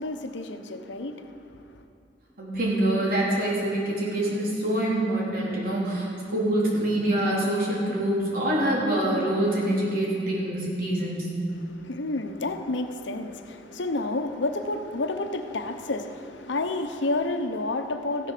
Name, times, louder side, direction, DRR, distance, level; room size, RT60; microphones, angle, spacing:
voice 1, 0.0-1.7 11.6-18.3, left 2 dB, 80° left, 0.9 m, -30 dB
voice 2, 2.4-11.3, right 1 dB, 55° right, 4.0 m, -25 dB
14.5 x 11.0 x 6.7 m
head